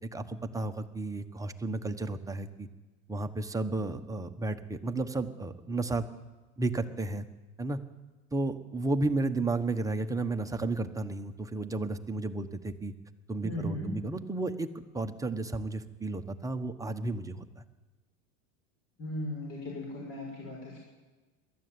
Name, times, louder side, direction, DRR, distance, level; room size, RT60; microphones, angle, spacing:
voice 1, 0.0-2.7 3.1-6.1 6.6-7.3 7.6-7.8 8.3-12.9 13.3-14.7 14.9-17.6, right 2 dB, 10° right, 6 dB, 1.1 m, -33 dB
voice 2, 13.4-13.9 19.0-20.8, left 1 dB, 40° left, -1 dB, 7.0 m, -37 dB
22.0 x 14.0 x 9.5 m, 1.2 s
supercardioid pair, 135°, 38 cm